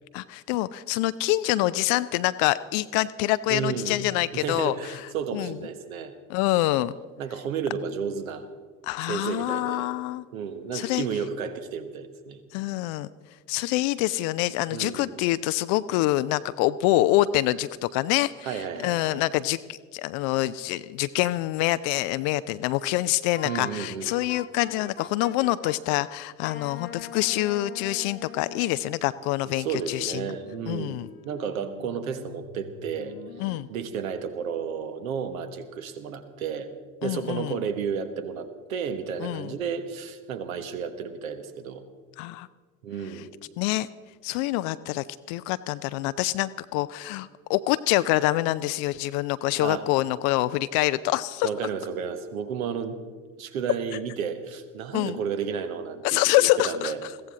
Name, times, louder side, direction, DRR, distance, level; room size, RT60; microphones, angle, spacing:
voice 1, 0.1-5.5 6.3-6.9 8.8-10.2 10.7-11.1 12.5-13.1 13.5-30.2 30.7-31.1 33.4-33.7 37.0-37.6 39.2-39.5 42.2-42.5 43.6-43.9 44.2-51.5 54.9-55.2 56.0-56.9, left 16 dB, 45° left, 15 dB, 0.5 m, -26 dB
voice 2, 3.5-4.0 4.3-6.1 7.2-8.5 9.0-9.9 10.3-12.4 14.7-15.2 18.4-19.2 23.4-24.1 29.6-36.7 37.0-41.8 42.8-43.3 49.6-49.8 51.4-53.0 53.4-57.0, right 7 dB, 70° right, 9 dB, 1.3 m, -32 dB
Wind instrument woodwind instrument, 23.3-26.0 26.4-28.8, left 8 dB, 25° left, 0.8 m, -42 dB
sound 1, 29.0-33.6, left 5 dB, 85° left, 1.0 m, -48 dB
22.0 x 16.0 x 3.7 m, 1.5 s
figure-of-eight pair, 60°, 43 cm